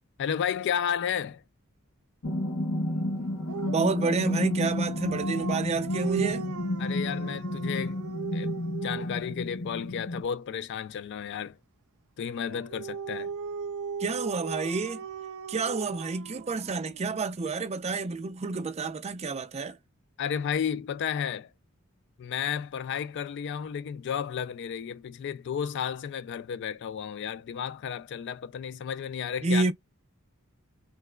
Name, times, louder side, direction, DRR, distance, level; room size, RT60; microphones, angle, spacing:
voice 1, 0.2-1.4 6.8-8.0 8.3-11.6 12.2-13.3 20.2-21.5 22.2-29.7, left 8 dB, 55° left, 0.3 m, -32 dB
sound 1, 2.2-10.2, left 1 dB, 85° left, 0.8 m, -31 dB
Dog, 3.5-9.3 12.5-17.0, right 6 dB, 90° right, 0.4 m, -38 dB
voice 2, 3.7-6.5 14.0-15.0 15.5-19.8 29.4-29.7, right 3 dB, 30° right, 0.4 m, -29 dB
3.2 x 2.9 x 2.2 m
head